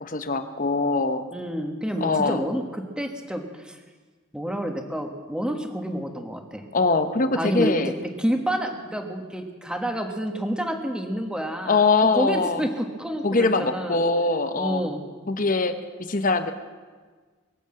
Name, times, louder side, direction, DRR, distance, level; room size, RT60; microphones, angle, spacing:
voice 1, 0.0-1.3 2.0-2.4 6.7-7.9 11.7-12.6 13.2-14.9 15.3-16.5, left 3 dB, 40° left, 9 dB, 0.9 m, -23 dB
voice 2, 1.3-2.6 3.0-3.8 4.3-6.6 7.3-7.8 8.2-11.8 12.1-14.0 14.6-15.0, equal, 5° right, 4 dB, 1.3 m, -29 dB
22.0 x 8.0 x 7.7 m, 1.4 s
head